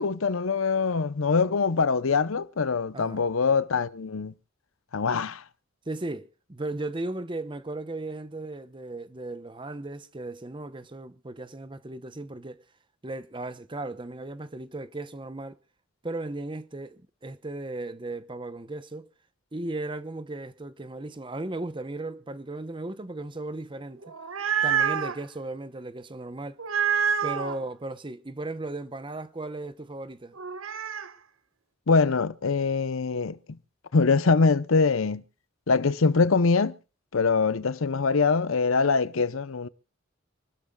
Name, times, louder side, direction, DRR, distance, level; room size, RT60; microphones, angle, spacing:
voice 1, 0.0-4.3 4.9-5.4 31.9-33.4 33.9-35.2 35.7-36.8 37.1-39.7, left 4 dB, 80° left, 0.7 m, -23 dB
voice 2, 2.9-3.3 5.9-12.6 13.0-15.6 16.0-19.1 19.5-24.1 24.6-26.6 27.2-30.4, right 2 dB, 25° right, 0.8 m, -36 dB
sound 1, 24.0-25.2 26.6-27.6 30.4-31.1, right 7 dB, 90° right, 1.3 m, -27 dB
28.0 x 13.0 x 2.3 m
head